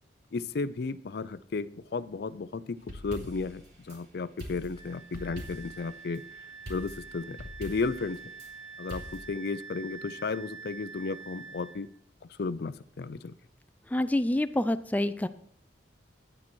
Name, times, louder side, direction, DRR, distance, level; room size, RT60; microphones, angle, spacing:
voice 1, 0.3-6.2 6.7-8.2 8.8-11.9 12.4-13.3, left 4 dB, 65° left, 16 dB, 0.5 m, -34 dB
sound 1, 2.8-4.0 4.4-5.9 6.7-8.5 8.9-9.2, equal, 70° right, 3.3 m, -43 dB
Wind instrument woodwind instrument, 4.7-11.8, right 5 dB, 30° left, 1.2 m, -46 dB
voice 2, 13.9-15.3, left 1 dB, 10° left, 10 dB, 0.3 m, -27 dB
9.7 x 8.7 x 4.4 m, 0.63 s
head